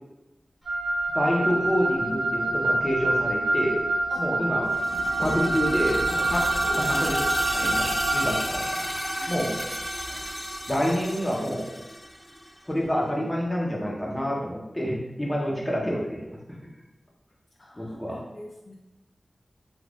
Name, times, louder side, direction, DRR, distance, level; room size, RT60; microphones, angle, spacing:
Wind instrument woodwind instrument, 0.6-8.4, right 2 dB, 90° right, 1.1 m, -26 dB
voice 1, 1.1-3.8 4.2-4.7 5.2-8.8 9.3-9.5 10.1-10.2 10.7-11.7 12.7-16.4 17.8-18.2, equal, 15° left, -3 dB, 0.8 m, -28 dB
sound 1, 4.7-12.5, equal, ahead, 0.4 m, -31 dB
voice 2, 9.0-9.4 15.3-15.4 17.6-18.8, left 1 dB, 60° left, -2 dB, 0.4 m, -45 dB
2.5 x 2.4 x 3.4 m, 0.97 s
cardioid pair, 45°, 0 cm